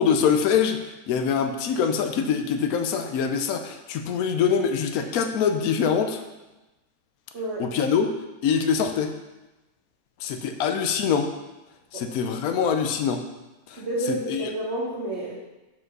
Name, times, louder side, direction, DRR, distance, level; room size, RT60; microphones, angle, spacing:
voice 1, 0.0-6.2 7.6-8.1 8.4-9.1 10.2-11.3 11.9-13.2 13.7-13.8 14.1-14.5, left 7 dB, 75° left, 6 dB, 1.1 m, -24 dB
voice 2, 7.3-7.7 11.9-12.0 13.8-15.4, right 1 dB, 45° right, -6 dB, 1.6 m, -30 dB
5.8 x 5.3 x 6.1 m, 1.1 s
omnidirectional pair, 1.6 m